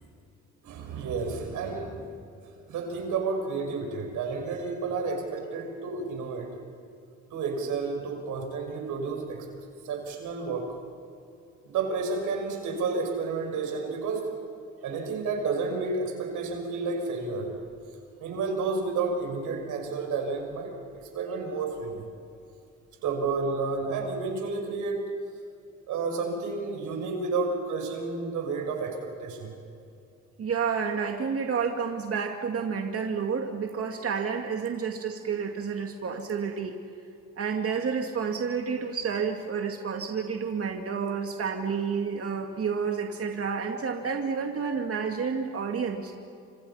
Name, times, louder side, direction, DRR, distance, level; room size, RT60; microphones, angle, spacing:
voice 1, 0.6-2.1 2.7-6.6 7.3-9.5 9.8-10.8 11.6-14.3 14.8-17.5 18.2-22.1 23.0-25.2 25.9-29.5, right 4 dB, 85° right, 3 dB, 5.9 m, -31 dB
voice 2, 30.4-36.8 37.4-46.1, right 6 dB, 50° right, 3 dB, 2.4 m, -30 dB
29.5 x 26.5 x 5.8 m, 2.6 s
cardioid pair, 90°, 30 cm